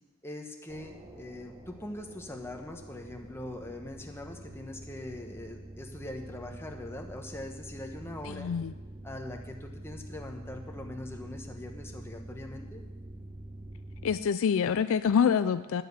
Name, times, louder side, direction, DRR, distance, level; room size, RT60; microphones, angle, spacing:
voice 1, 0.2-8.5 9.0-12.8, left 1 dB, 10° left, 3 dB, 1.1 m, -42 dB
sound 1, 0.7-14.2, right 1 dB, 20° right, 1.1 m, -46 dB
voice 2, 8.2-8.7 14.0-15.8, left 7 dB, 60° left, 12 dB, 0.4 m, -26 dB
9.9 x 7.5 x 8.2 m, 1.2 s
head